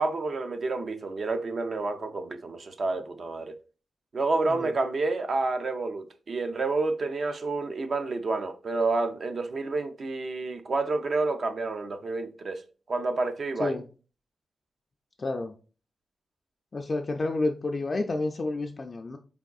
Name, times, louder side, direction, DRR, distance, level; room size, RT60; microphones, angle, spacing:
voice 1, 0.0-3.6 4.1-12.6 12.9-13.8, right 3 dB, 50° right, 0.4 m, -29 dB
voice 2, 15.2-15.5 16.7-19.2, left 2 dB, 35° left, 0.3 m, -30 dB
4.4 x 3.5 x 2.3 m
wide cardioid pair, 135°, 0 cm